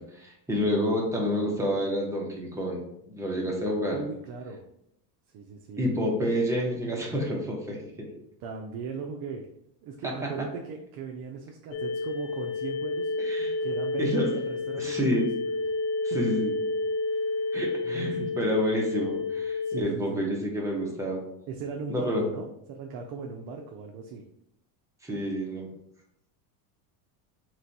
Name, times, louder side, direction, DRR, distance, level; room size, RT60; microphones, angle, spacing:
voice 1, 0.1-4.0 5.8-8.1 10.2-10.3 13.2-13.5 14.0-14.3 14.8-15.2 16.1-16.5 17.5-21.2 21.9-22.3 25.0-25.7, equal, 5° right, -2 dB, 0.9 m, -29 dB
voice 2, 3.9-4.6 5.3-6.0 8.4-9.5 9.8-13.1 13.6-15.3 17.1-18.3 19.6-20.3 21.5-24.2, right 5 dB, 50° right, 2 dB, 0.6 m, -38 dB
sound 1, 11.7-19.8, left 3 dB, 45° left, 0.4 m, -30 dB
3.3 x 3.1 x 4.0 m, 0.77 s
supercardioid pair, 130°, 46 cm